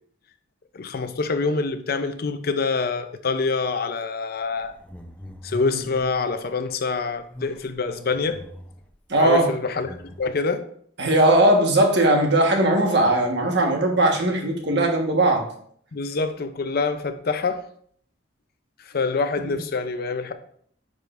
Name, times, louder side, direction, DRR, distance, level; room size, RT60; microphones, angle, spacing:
voice 1, 0.7-4.7 5.4-8.4 9.2-10.7 15.9-17.6 18.8-20.3, left 4 dB, 55° left, 0.5 m, -26 dB
sound 1, 4.5-6.3 7.2-8.9 9.8-10.2, left 1 dB, 10° left, 0.5 m, -40 dB
voice 2, 9.1-9.5 11.0-15.5, right 1 dB, 60° right, 1.3 m, -19 dB
9.2 x 5.0 x 2.5 m
head